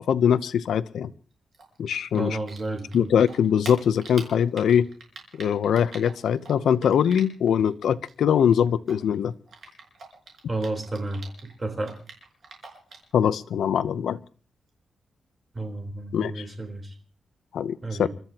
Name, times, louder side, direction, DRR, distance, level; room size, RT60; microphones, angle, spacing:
voice 1, 0.1-1.1 1.8-2.4 2.9-4.9 5.4-9.3 13.1-14.2 16.1-16.4 17.5-18.1, left 8 dB, 85° left, 0.8 m, -22 dB
Typing, 1.5-3.0 3.2-7.7 7.9-11.5 11.8-13.1, right 4 dB, 60° right, 5.0 m, -44 dB
voice 2, 2.2-3.1 10.5-11.2 11.6-11.9 15.5-16.9 17.8-18.1, right 2 dB, 20° right, 3.9 m, -31 dB
29.0 x 13.5 x 3.0 m
wide cardioid pair, 140°, 0 cm